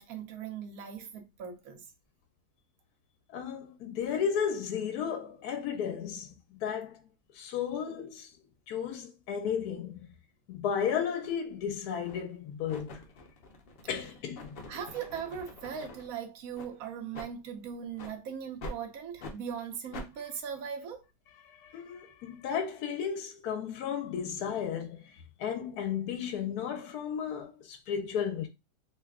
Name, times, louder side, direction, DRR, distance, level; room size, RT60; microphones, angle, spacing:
voice 1, 0.0-1.9 14.7-21.0, right 7 dB, 65° right, 1.1 m, -39 dB
voice 2, 3.3-7.0 7.3-8.3 8.7-10.1 10.5-13.0 13.9-14.6 21.4-28.5, left 7 dB, 75° left, 1.1 m, -34 dB
sound 1, 11.2-11.4 12.0-12.3 12.7-16.1 16.5-16.7 17.1-17.3 17.9-18.2 18.6-18.8 19.2-19.4 19.9-20.1, left 2 dB, 50° left, 0.7 m, -45 dB
3.1 x 2.2 x 3.5 m
omnidirectional pair, 1.8 m